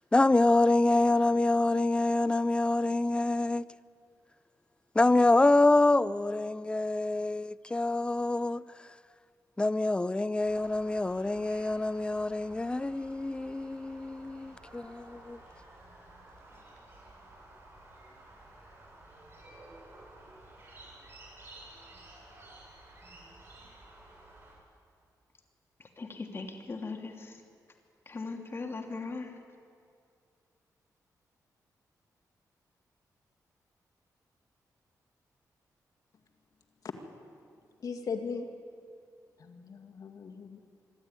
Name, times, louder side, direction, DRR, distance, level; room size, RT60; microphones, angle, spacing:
voice 1, 0.1-3.6 4.9-8.6 9.6-15.4, left 2 dB, 15° left, 0.5 m, -26 dB
sound 1, 10.4-24.6, right 2 dB, 40° right, 7.4 m, -53 dB
voice 2, 25.8-27.4 28.1-29.4, left 3 dB, 35° left, 2.7 m, -39 dB
voice 3, 37.8-38.5 39.4-40.6, left 5 dB, 60° left, 2.1 m, -38 dB
24.5 x 12.5 x 9.7 m
cardioid pair, 90°, 7 cm